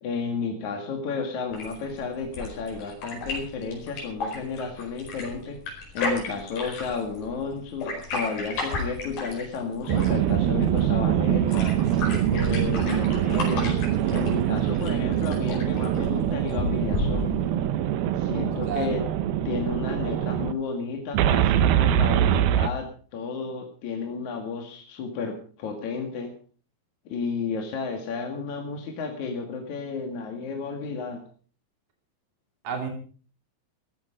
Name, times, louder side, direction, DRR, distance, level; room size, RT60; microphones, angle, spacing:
voice 1, 0.0-5.6 5.9-11.8 12.3-13.8 14.1-17.3 18.2-19.0 19.4-26.3 27.1-31.2, left 5 dB, 55° left, 2 dB, 3.1 m, -32 dB
sound 1, 1.5-17.5, left 3 dB, 80° left, 6.8 m, -34 dB
sound 2, 9.9-20.5 21.1-22.7, right 11 dB, 80° right, 2.7 m, -24 dB
voice 2, 18.3-19.0 32.6-32.9, right 5 dB, 60° right, 3 dB, 4.3 m, -32 dB
16.5 x 13.5 x 5.1 m, 0.42 s
omnidirectional pair, 4.4 m